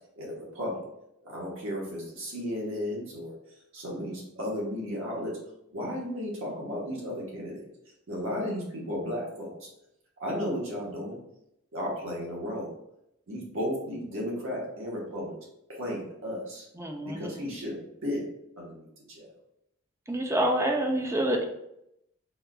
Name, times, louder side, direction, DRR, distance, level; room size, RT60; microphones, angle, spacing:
voice 1, 0.2-0.8 1.2-3.3 3.7-5.4 5.7-7.7 8.1-9.7 10.2-11.2 11.7-12.7 13.3-15.4 15.7-16.7 17.0-18.2 18.6-19.3, equal, 70° right, -3 dB, 1.1 m, -34 dB
voice 2, 16.8-17.3 20.1-21.4, right 1 dB, 15° right, 3 dB, 0.4 m, -27 dB
4.2 x 2.5 x 2.2 m, 0.80 s
head